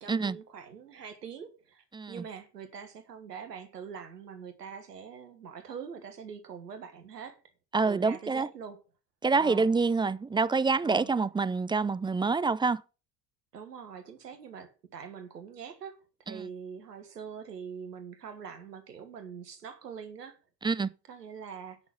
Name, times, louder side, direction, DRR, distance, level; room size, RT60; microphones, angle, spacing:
voice 1, 0.0-7.4 7.8-8.8 9.4-9.6 10.8-11.1 13.5-16.0 16.3-20.4 21.1-21.8, right 7 dB, 85° right, 1.7 m, -43 dB
voice 2, 1.9-2.2 7.7-8.5 9.2-12.8 16.3-16.5 20.6-20.9, right 4 dB, 10° right, 0.4 m, -27 dB
9.7 x 6.1 x 6.4 m
hypercardioid pair, 60°, 47 cm